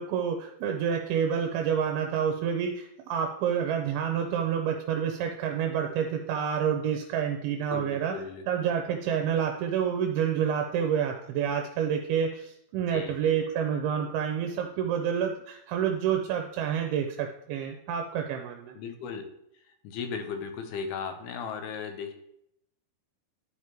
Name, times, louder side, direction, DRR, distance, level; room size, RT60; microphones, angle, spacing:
voice 1, 0.0-8.1 8.5-18.8, right 8 dB, 85° right, 3 dB, 2.4 m, -28 dB
voice 2, 7.7-8.4 12.8-13.4 18.7-19.2 19.6-22.1, left 6 dB, 80° left, 7 dB, 2.6 m, -36 dB
11.5 x 4.8 x 3.0 m, 0.77 s
omnidirectional pair, 4.7 m